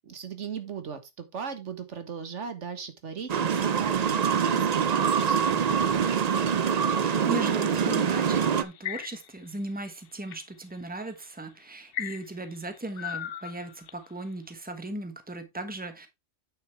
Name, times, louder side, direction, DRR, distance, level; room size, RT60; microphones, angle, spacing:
voice 1, 0.0-5.6, right 6 dB, 85° right, 1.6 m, -38 dB
sound 1, 3.3-8.6, right 7 dB, 45° right, 0.6 m, -24 dB
sound 2, 6.0-7.2 8.2-9.5 9.9-10.4 11.1-11.2 11.9-14.1, left 11 dB, 60° left, 0.7 m, -38 dB
voice 2, 7.0-16.1, right 2 dB, 10° right, 1.2 m, -37 dB
8.7 x 6.8 x 3.3 m
omnidirectional pair, 1.2 m